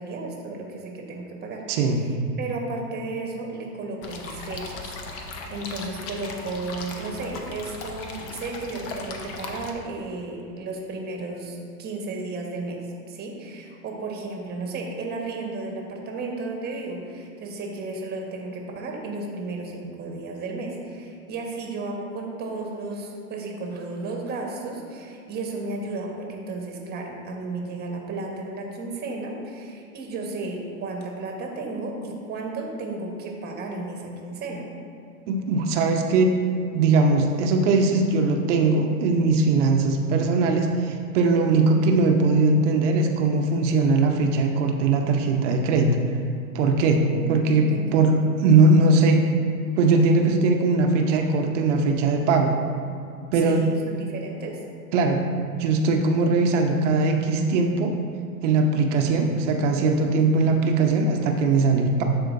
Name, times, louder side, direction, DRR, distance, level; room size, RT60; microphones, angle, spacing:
voice 1, 0.0-2.0 2.4-12.8 13.1-34.7 47.1-47.3 47.7-48.1 53.3-54.6, right 3 dB, 20° right, 0 dB, 1.3 m, -33 dB
voice 2, 1.7-2.1 35.3-36.4 36.7-46.0 46.5-47.0 47.3-49.2 49.8-52.6 53.3-53.7 54.9-55.2 55.6-57.9 58.4-62.0, right 3 dB, 50° right, 3 dB, 0.9 m, -20 dB
sound 1, 4.0-9.7, left 3 dB, 30° left, 0.8 m, -37 dB
12.5 x 4.4 x 2.6 m, 2.6 s
hypercardioid pair, 115°, 45 cm